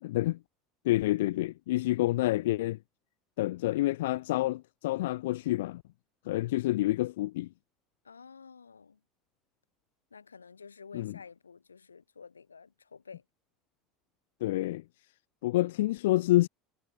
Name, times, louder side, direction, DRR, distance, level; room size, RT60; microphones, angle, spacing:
voice 1, 0.0-0.4 0.8-2.8 3.4-5.8 6.3-7.5 10.9-11.1 14.4-14.8 15.4-16.5, left 17 dB, 70° left, 0.4 m, -28 dB
voice 2, 8.0-9.0 10.1-13.2, left 5 dB, 85° left, 2.6 m, -51 dB
figure-of-eight pair, 70°, 0 cm